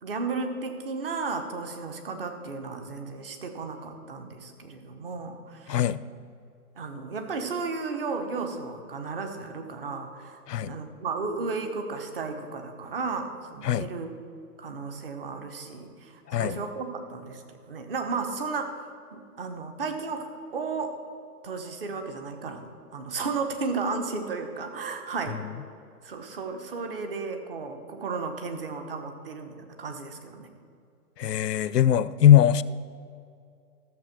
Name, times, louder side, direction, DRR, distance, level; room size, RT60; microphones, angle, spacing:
voice 1, 0.0-5.8 6.8-14.1 14.6-18.8 19.1-21.0 21.4-25.4 26.0-30.5, right 4 dB, 35° right, 6 dB, 1.1 m, -34 dB
voice 2, 5.7-6.0 10.5-10.7 13.6-13.9 16.3-16.6 31.2-32.6, left 11 dB, 80° left, 17 dB, 0.6 m, -20 dB
14.0 x 7.1 x 6.0 m, 2.4 s
hypercardioid pair, 160°, 48 cm